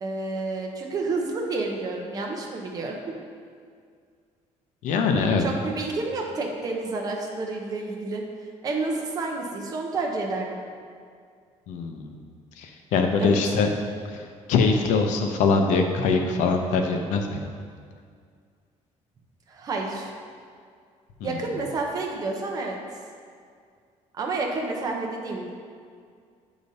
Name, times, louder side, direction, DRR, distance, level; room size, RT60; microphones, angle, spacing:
voice 1, 0.0-3.0 5.4-8.2 8.6-10.6 13.2-13.6 19.5-20.1 21.2-22.8 24.1-25.5, right 3 dB, 30° right, 1 dB, 0.7 m, -30 dB
voice 2, 4.8-5.4 11.7-12.2 12.6-13.7 14.1-14.2 14.5-17.4 21.2-21.4, left 4 dB, 85° left, 4 dB, 0.6 m, -23 dB
7.8 x 5.0 x 2.7 m, 2.1 s
cardioid pair, 170°, 12 cm